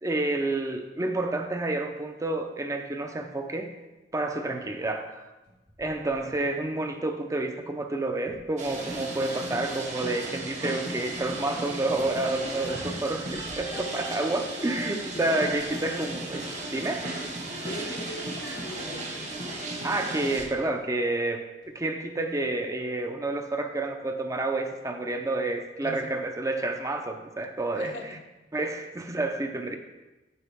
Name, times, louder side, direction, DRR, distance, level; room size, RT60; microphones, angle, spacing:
voice 1, 0.0-3.7 4.1-5.3 5.8-16.4 16.7-17.1 19.8-27.9 28.5-29.8, right 2 dB, 20° right, 6 dB, 0.5 m, -29 dB
sound 1, 5.5-7.0 8.2-9.6 9.9-14.8 15.1-16.8 17.2-18.3 19.4-21.2 21.6-21.7, right 1 dB, 90° right, 2.6 m, -54 dB
sound 2, 8.6-20.4, right 2 dB, 40° right, 1.2 m, -35 dB
voice 2, 15.1-15.6 17.5-19.3 25.8-26.2 27.7-28.2, left 1 dB, 85° left, 4 dB, 0.8 m, -41 dB
6.9 x 6.5 x 3.5 m, 1.1 s
head